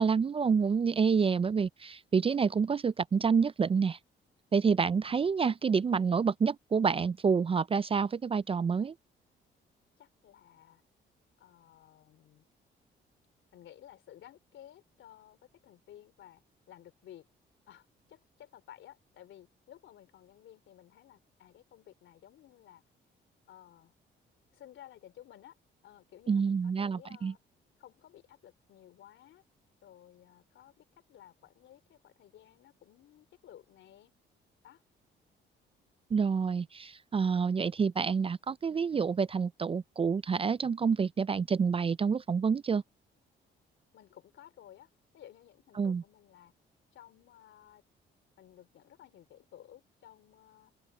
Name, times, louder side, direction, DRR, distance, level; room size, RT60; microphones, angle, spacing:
voice 1, 0.0-4.0 4.5-8.9 26.3-27.3 36.1-42.8 45.8-46.0, right 5 dB, 30° right, 0.4 m, -28 dB
voice 2, 10.0-10.8 11.4-12.4 13.5-16.4 16.7-17.3 17.7-22.8 23.5-23.9 24.5-25.6 25.8-27.4 27.8-29.4 29.8-34.1 34.6-34.8 43.9-46.5 46.9-47.8 48.4-50.7, left 11 dB, 75° left, 4.2 m, -55 dB
open air
cardioid pair, 90°, 20 cm